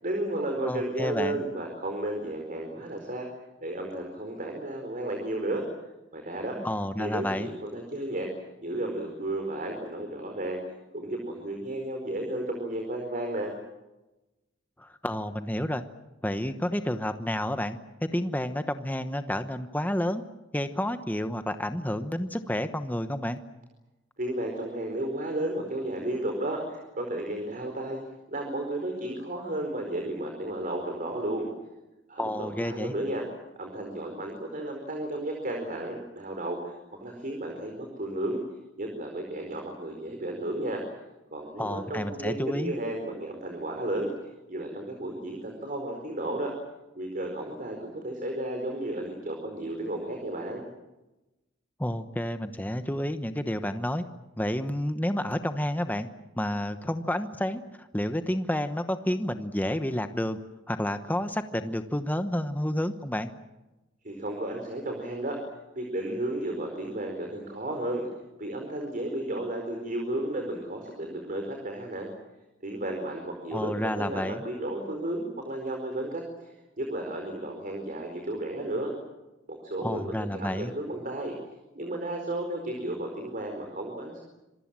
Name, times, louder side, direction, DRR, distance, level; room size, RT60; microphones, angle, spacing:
voice 1, 0.0-3.3 3.6-5.6 6.1-6.6 7.0-8.3 8.6-10.6 10.9-13.5 24.2-28.0 28.3-31.5 32.1-33.2 33.6-38.4 38.8-40.8 41.3-44.1 44.5-46.5 46.9-50.6 64.0-65.4 65.8-68.0 68.4-72.1 72.6-78.9 79.5-81.3 81.7-84.2, right 1 dB, 45° right, 3 dB, 4.6 m, -33 dB
voice 2, 0.6-1.4 6.6-7.5 14.8-15.8 16.2-17.8 18.1-20.2 20.5-23.4 32.2-32.9 41.6-42.7 51.8-54.0 54.4-56.1 56.3-60.4 60.7-63.3 73.5-74.4 79.8-80.7, left 1 dB, 10° left, 9 dB, 1.0 m, -30 dB
27.0 x 23.0 x 7.6 m, 1.0 s
head